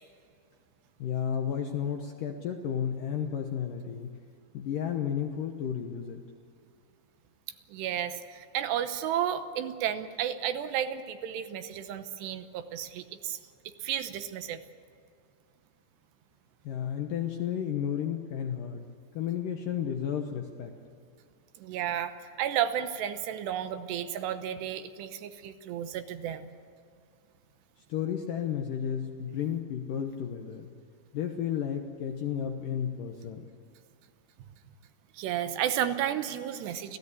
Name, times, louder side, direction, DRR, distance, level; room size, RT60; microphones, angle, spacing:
voice 1, 1.0-4.2 4.5-6.2 16.6-18.8 19.1-20.7 27.9-30.7 31.1-33.5, left 8 dB, 75° left, 4 dB, 2.1 m, -32 dB
voice 2, 7.7-13.4 13.8-14.6 21.6-26.6 35.1-37.0, right 10 dB, 75° right, 9 dB, 2.9 m, -32 dB
26.5 x 16.5 x 8.4 m, 2.3 s
omnidirectional pair, 5.2 m